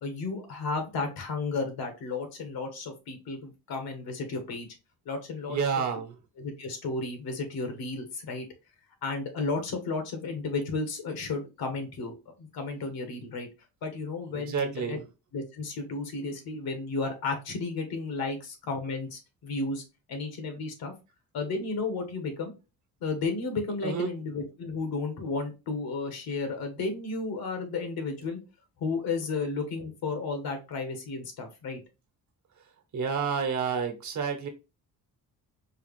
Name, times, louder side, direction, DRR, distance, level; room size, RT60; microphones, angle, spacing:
voice 1, 0.0-4.7 5.0-5.6 6.4-8.4 9.0-13.5 13.8-15.0 15.3-19.8 20.1-20.9 21.3-22.5 23.0-28.4 28.8-31.8, left 3 dB, 75° left, 5 dB, 1.5 m, -33 dB
voice 2, 5.5-6.1 14.3-15.0 23.8-24.1 32.9-34.5, right 6 dB, 55° right, 6 dB, 1.1 m, -29 dB
4.7 x 2.4 x 3.3 m, 0.28 s
cardioid pair, 95°, 36 cm